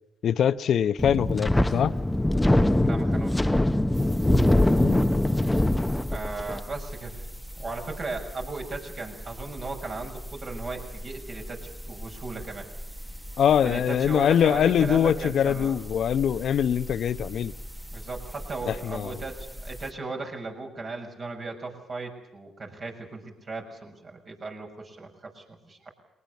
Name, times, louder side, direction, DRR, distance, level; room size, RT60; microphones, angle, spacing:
voice 1, 0.2-1.9 4.8-5.1 13.4-17.5 18.7-19.2, left 9 dB, 65° left, 0.8 m, -23 dB
Wind, 1.0-6.6, left 1 dB, 10° left, 1.0 m, -22 dB
voice 2, 2.8-3.6 6.1-7.2 7.6-12.7 13.6-15.8 17.9-25.9, right 3 dB, 45° right, 6.5 m, -37 dB
sound 1, 3.9-19.9, equal, 10° right, 1.5 m, -40 dB
22.5 x 19.5 x 8.3 m
supercardioid pair, 60°, 0 cm